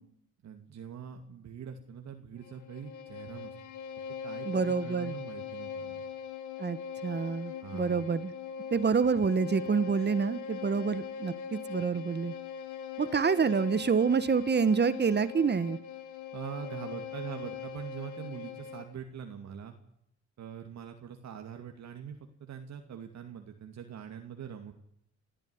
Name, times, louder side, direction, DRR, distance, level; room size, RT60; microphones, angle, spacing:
voice 1, 0.4-3.5 4.2-6.1 7.6-8.1 16.3-19.7 20.4-24.7, right 8 dB, 65° right, 4 dB, 2.3 m, -43 dB
Bowed string instrument, 2.4-19.0, left 7 dB, 75° left, 1.8 m, -41 dB
voice 2, 4.4-5.1 6.6-8.3 8.7-12.3 13.0-15.8, right 5 dB, 35° right, 15 dB, 1.4 m, -27 dB
26.5 x 14.0 x 9.6 m, 0.76 s
cardioid pair, 90°, 30 cm